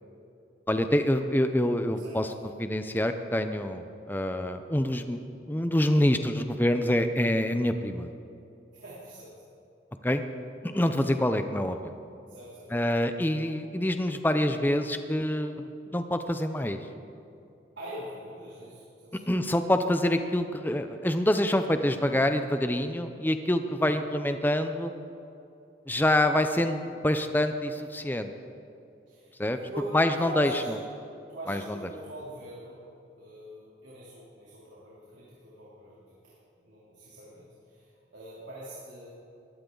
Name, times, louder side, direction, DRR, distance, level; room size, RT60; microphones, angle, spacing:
voice 1, 0.7-2.3 2.6-5.2 5.5-8.1 10.0-10.2 10.6-11.9 12.7-16.8 19.3-24.9 25.9-28.3 29.4-29.6 29.9-30.5 31.5-31.8, left 1 dB, 10° left, 8 dB, 0.6 m, -26 dB
voice 2, 8.7-9.3 11.0-11.2 12.3-12.7 17.8-19.3 23.7-23.9 29.1-30.7 31.3-32.8 33.2-36.3 36.6-39.1, right 1 dB, 90° right, -7 dB, 3.3 m, -42 dB
20.5 x 15.0 x 3.9 m, 2.6 s
head